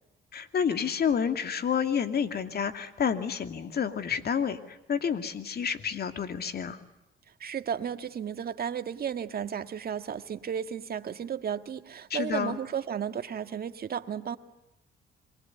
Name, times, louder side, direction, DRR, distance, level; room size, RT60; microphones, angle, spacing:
voice 1, 0.3-6.8 12.1-12.6, left 7 dB, 55° left, 8 dB, 2.6 m, -29 dB
voice 2, 7.4-14.4, right 8 dB, 50° right, 9 dB, 1.8 m, -33 dB
27.5 x 23.0 x 9.4 m, 0.92 s
cardioid pair, 90°, 20 cm